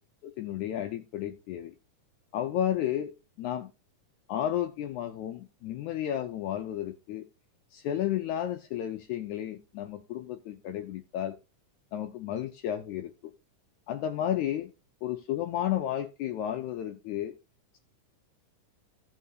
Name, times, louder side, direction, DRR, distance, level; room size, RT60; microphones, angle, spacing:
voice 1, 0.2-1.7 2.3-3.7 4.3-7.2 7.7-11.4 11.9-13.1 13.9-14.7 15.0-17.3, left 11 dB, 75° left, 6 dB, 1.9 m, -32 dB
16.0 x 5.8 x 2.8 m, 0.28 s
omnidirectional pair, 3.9 m